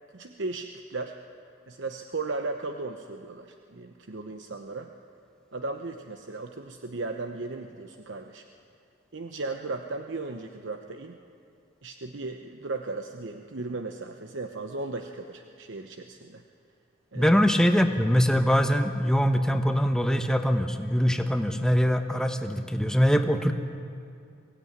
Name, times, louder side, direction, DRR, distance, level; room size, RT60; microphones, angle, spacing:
voice 1, 0.1-1.2 1.7-4.9 5.5-8.4 9.1-11.2 11.8-16.4 17.1-17.4, right 3 dB, 70° right, 5 dB, 0.9 m, -36 dB
voice 2, 17.1-23.5, equal, 5° left, 6 dB, 1.1 m, -23 dB
22.5 x 16.5 x 9.5 m, 2.4 s
head